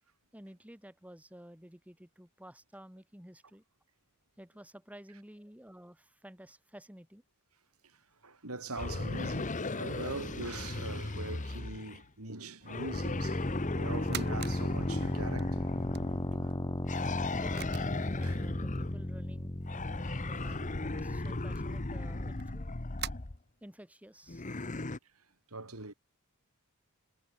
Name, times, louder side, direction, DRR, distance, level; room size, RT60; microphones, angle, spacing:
voice 1, 0.3-3.6 4.4-7.2 17.3-17.8 18.2-19.5 20.2-22.7 23.6-24.4, equal, 5° right, 3.8 m, -52 dB
voice 2, 8.2-15.7 16.3-16.6 18.2-18.4 20.0-20.5 23.0-23.1 24.5-24.7 25.5-25.9, right 2 dB, 80° right, 6.7 m, -42 dB
sound 1, 8.7-12.0 12.7-16.4 16.8-19.1 19.7-23.4 24.3-25.0, left 2 dB, 35° left, 1.1 m, -37 dB
sound 2, 12.9-22.5, left 1 dB, 20° left, 1.4 m, -36 dB
sound 3, 13.9-14.6 15.0-16.5 17.3-17.4 17.5-18.0 18.8-18.9 20.1-20.2 20.5-20.6 20.9-23.1, right 11 dB, 50° right, 1.5 m, -44 dB
head